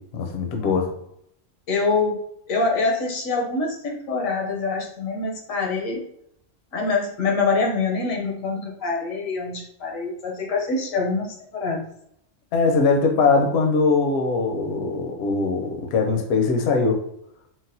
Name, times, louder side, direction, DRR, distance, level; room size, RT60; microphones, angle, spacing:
voice 1, 0.1-0.9 12.5-17.0, left 4 dB, 60° left, 2 dB, 0.7 m, -21 dB
voice 2, 1.7-6.0 6.7-11.8, left 3 dB, 85° left, 0 dB, 1.2 m, -25 dB
3.9 x 2.1 x 2.7 m, 0.71 s
omnidirectional pair, 1.4 m